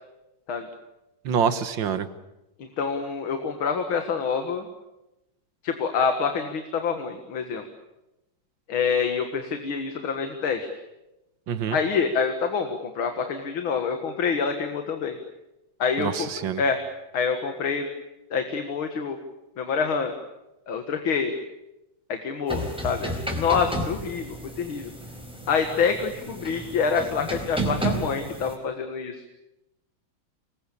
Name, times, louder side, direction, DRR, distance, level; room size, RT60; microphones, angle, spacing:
voice 1, 1.3-2.1 11.5-11.8 16.0-16.6, right 7 dB, 70° right, 12 dB, 2.0 m, -26 dB
voice 2, 2.6-4.7 5.6-7.6 8.7-10.7 11.7-15.2 15.8-16.3 16.6-16.8 17.1-17.9 18.3-19.2 19.6-20.1 20.7-21.3 22.1-24.9 25.5-29.2, left 5 dB, 85° left, 6 dB, 2.5 m, -26 dB
sound 1, 22.5-28.5, right 1 dB, ahead, 4.3 m, -32 dB
25.5 x 21.0 x 8.6 m, 0.94 s
omnidirectional pair, 2.2 m